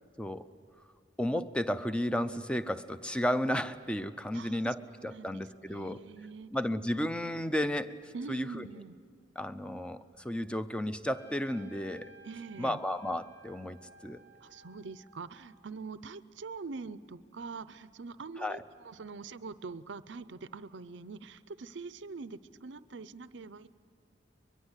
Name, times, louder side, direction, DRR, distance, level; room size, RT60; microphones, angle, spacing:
voice 1, 1.2-6.0 6.5-8.7 9.4-12.1 12.6-13.8 14.0-14.2 18.4-18.6, left 1 dB, 5° left, 12 dB, 0.6 m, -33 dB
voice 2, 4.3-6.5 8.1-9.0 12.2-12.8 14.4-23.7, right 4 dB, 70° right, 15 dB, 0.6 m, -44 dB
Trumpet, 11.1-15.8, right 3 dB, 60° left, 3.4 m, -57 dB
23.0 x 22.0 x 8.2 m, 2.1 s
head